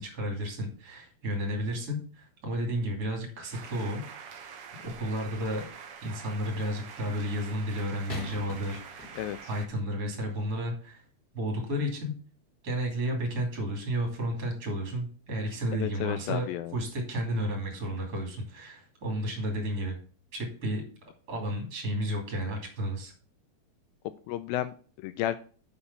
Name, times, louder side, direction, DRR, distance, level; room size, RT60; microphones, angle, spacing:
voice 1, 0.0-4.4 4.8-5.7 6.0-9.1 9.5-11.0 11.3-12.1 12.6-20.0 20.3-20.8 21.3-23.1, equal, 25° right, 1 dB, 2.8 m, -32 dB
sound 1, 3.5-9.7, right 6 dB, 90° right, 1.3 m, -46 dB
sound 2, 8.1-9.6 10.4-10.5, left 3 dB, 55° left, 1.0 m, -44 dB
voice 2, 15.8-16.7 24.3-25.4, left 12 dB, 80° left, 11 dB, 2.1 m, -32 dB
6.9 x 5.6 x 7.0 m, 0.40 s
omnidirectional pair, 4.4 m